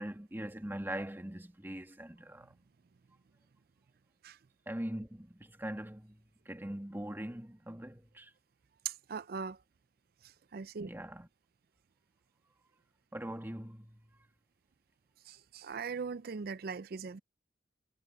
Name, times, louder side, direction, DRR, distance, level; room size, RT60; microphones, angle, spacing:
voice 1, 0.0-2.5 4.7-6.2 6.5-8.3 10.9-11.3 13.1-14.0, right 1 dB, 15° right, 2.0 m, -41 dB
voice 2, 8.8-9.6 10.5-10.9 15.3-17.2, right 5 dB, 60° right, 0.5 m, -40 dB
head